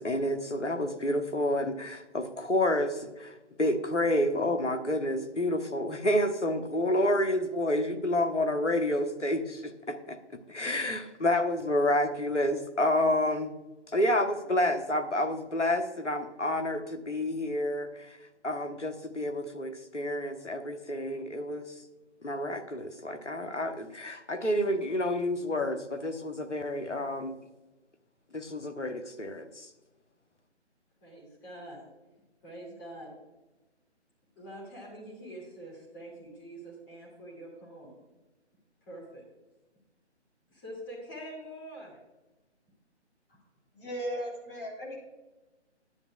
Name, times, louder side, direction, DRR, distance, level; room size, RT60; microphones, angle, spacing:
voice 1, 0.0-10.2 10.5-13.5 13.9-18.2 18.4-21.7 22.2-27.3 28.3-29.7, left 1 dB, 80° left, 7 dB, 1.1 m, -29 dB
voice 2, 31.0-31.8 32.4-33.1 34.4-38.0 38.8-39.2 40.5-42.0, right 1 dB, 20° left, -4 dB, 2.4 m, -45 dB
voice 3, 43.7-45.0, equal, 50° left, -1 dB, 2.6 m, -36 dB
10.5 x 10.0 x 2.3 m, 1.1 s
figure-of-eight pair, 145°, 35 cm